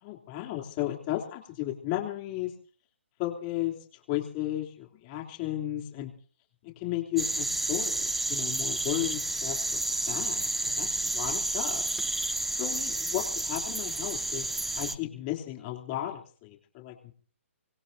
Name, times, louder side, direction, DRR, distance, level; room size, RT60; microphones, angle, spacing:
voice 1, 0.0-2.5 3.2-6.1 6.6-11.9 12.5-14.5 14.8-17.1, left 14 dB, 30° left, 2 dB, 3.3 m, -34 dB
sound 1, 7.2-15.0, right 2 dB, ahead, 0.6 m, -30 dB
25.5 x 18.0 x 2.8 m, 0.42 s
hypercardioid pair, 150°, 7 cm